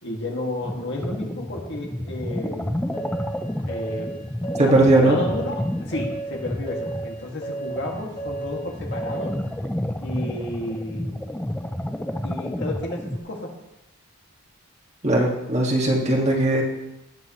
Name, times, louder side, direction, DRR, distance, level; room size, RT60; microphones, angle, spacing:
voice 1, 0.0-2.8 3.6-4.1 4.7-9.3 10.0-11.2 12.2-13.5, left 1 dB, 55° left, -1 dB, 2.1 m, -32 dB
sound 1, 0.6-13.2, left 1 dB, 5° left, 0.4 m, -31 dB
sound 2, 2.9-9.5, right 3 dB, 30° left, 1.8 m, -33 dB
voice 2, 4.6-5.2 15.0-16.6, right 2 dB, 30° right, -2 dB, 1.9 m, -18 dB
19.0 x 8.2 x 3.1 m, 0.93 s
head